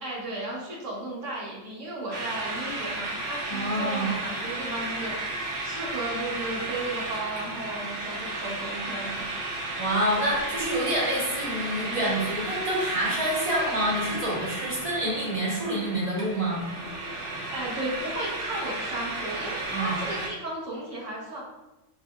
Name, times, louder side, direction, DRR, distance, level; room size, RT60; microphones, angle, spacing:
voice 1, 0.0-9.3 17.5-21.4, right 1 dB, 90° right, -4 dB, 1.5 m, -35 dB
sound 1, 2.1-20.3, right 2 dB, 70° right, 1.3 m, -33 dB
voice 2, 3.5-4.1 9.8-16.6 19.7-20.0, right 1 dB, 25° right, -5 dB, 1.4 m, -27 dB
4.8 x 4.2 x 2.5 m, 1.0 s
omnidirectional pair, 1.3 m